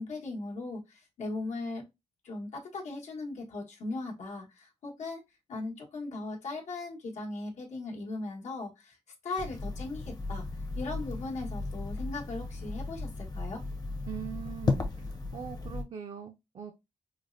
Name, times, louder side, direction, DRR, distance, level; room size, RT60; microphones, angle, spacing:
voice 1, 0.0-1.8 2.2-5.2 5.5-9.0 9.2-10.5 10.7-13.6, left 3 dB, 80° left, 1.2 m, -38 dB
sound 1, 9.4-15.8, left 3 dB, 35° left, 0.7 m, -35 dB
voice 2, 14.1-14.9 15.3-16.7, right 8 dB, 55° right, 0.5 m, -41 dB
5.1 x 2.1 x 2.5 m
cardioid pair, 90°, 12 cm